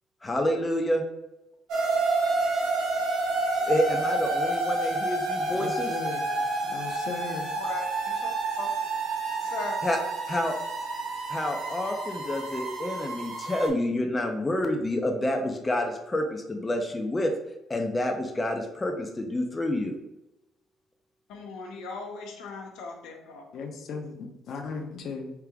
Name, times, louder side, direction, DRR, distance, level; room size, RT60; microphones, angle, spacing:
voice 1, 0.2-1.0 3.7-5.9 9.8-10.0 10.3-10.6 11.3-17.3 17.7-19.9, left 1 dB, 15° left, 3 dB, 0.4 m, -28 dB
sound 1, 1.7-13.7, right 3 dB, 80° right, 1.3 m, -29 dB
voice 2, 5.5-6.3 6.7-7.5 23.5-25.3, left 4 dB, 55° left, 4 dB, 0.7 m, -37 dB
voice 3, 7.5-8.8 9.4-9.8 21.3-23.5, left 3 dB, 85° left, 1 dB, 0.9 m, -39 dB
3.4 x 2.8 x 4.7 m, 0.92 s
cardioid pair, 150°, 0 cm